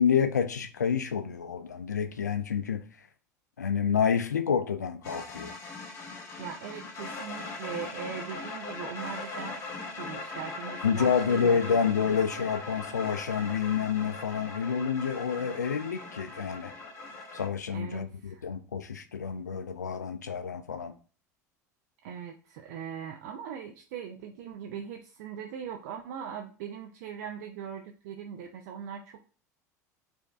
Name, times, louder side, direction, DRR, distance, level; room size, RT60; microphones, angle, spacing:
voice 1, 0.0-2.8 3.6-5.5 10.8-16.7 17.3-20.9, left 7 dB, 85° left, 0.4 m, -28 dB
sound 1, 5.0-17.5, left 3 dB, 35° left, 1.4 m, -40 dB
voice 2, 6.4-11.5 17.7-18.5 22.0-29.2, right 8 dB, 60° right, 0.4 m, -40 dB
6.4 x 2.6 x 2.4 m
figure-of-eight pair, 75°, 9 cm